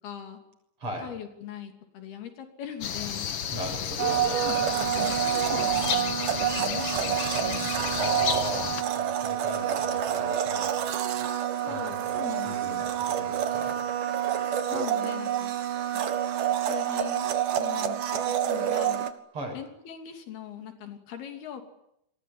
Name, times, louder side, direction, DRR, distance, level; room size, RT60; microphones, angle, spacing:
voice 1, 0.0-0.4 1.0-3.3 4.0-7.2 7.4-7.8 11.6-12.9 14.7-15.5 16.6-17.3 17.5-19.1 19.5-21.6, left 9 dB, 90° left, 6 dB, 4.9 m, -40 dB
sound 1, 2.8-8.8, left 8 dB, 55° left, 1.6 m, -32 dB
voice 2, 3.5-4.3 8.0-10.7 11.7-13.8 19.3-19.6, right 1 dB, 35° right, 5 dB, 7.6 m, -37 dB
Domestic sounds home sounds, 4.0-19.1, right 10 dB, 65° right, 3.0 m, -28 dB
27.5 x 21.5 x 9.8 m, 0.78 s
omnidirectional pair, 4.3 m